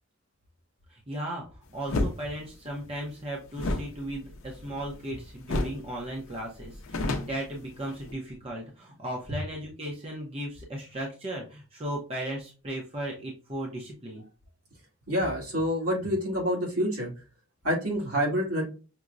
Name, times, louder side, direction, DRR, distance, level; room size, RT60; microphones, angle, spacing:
voice 1, 0.9-1.5 1.7-14.2, right 1 dB, 25° right, -2 dB, 0.6 m, -36 dB
sound 1, 1.9-2.2 3.5-5.1 5.5-5.9 6.2-6.3 6.6-8.1, left 2 dB, 65° left, 0.5 m, -30 dB
voice 2, 15.1-17.1 17.6-18.6, equal, 80° right, -3 dB, 1.8 m, -27 dB
5.9 x 2.1 x 2.5 m, 0.34 s
head